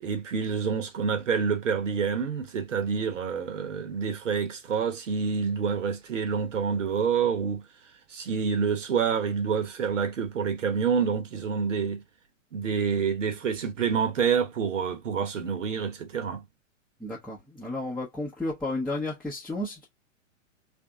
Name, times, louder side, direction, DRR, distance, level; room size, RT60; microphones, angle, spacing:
voice 1, 0.0-7.6 8.1-12.0 12.5-16.4, right 6 dB, 65° right, 1.1 m, -27 dB
voice 2, 17.0-19.9, left 2 dB, ahead, 0.7 m, -32 dB
3.3 x 2.7 x 3.6 m
figure-of-eight pair, 115°, 39 cm